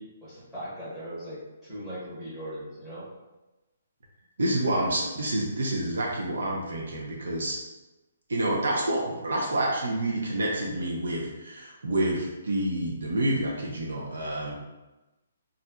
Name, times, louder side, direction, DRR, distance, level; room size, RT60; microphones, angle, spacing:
voice 1, 0.0-3.1, equal, 5° right, -11 dB, 0.9 m, -39 dB
voice 2, 4.4-7.6 8.3-14.5, right 1 dB, 90° right, -2 dB, 0.7 m, -28 dB
4.0 x 2.4 x 2.2 m, 1.0 s
hypercardioid pair, 180°, 0 cm